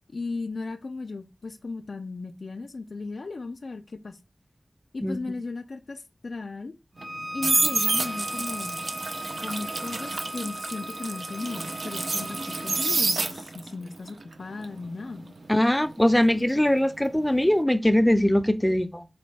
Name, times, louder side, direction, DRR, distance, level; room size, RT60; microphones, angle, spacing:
voice 1, 0.1-4.2 4.9-6.7 7.3-8.8 9.4-15.3, left 3 dB, 85° left, 0.3 m, -36 dB
Bowed string instrument, 7.0-13.0, equal, 40° right, 1.0 m, -38 dB
sound 1, 7.0-13.7 14.1-17.0 17.2-17.6, right 3 dB, 85° right, 0.4 m, -29 dB
voice 2, 15.5-19.1, left 1 dB, 10° left, 0.4 m, -21 dB
4.2 x 3.0 x 3.2 m
wide cardioid pair, 70°, 0 cm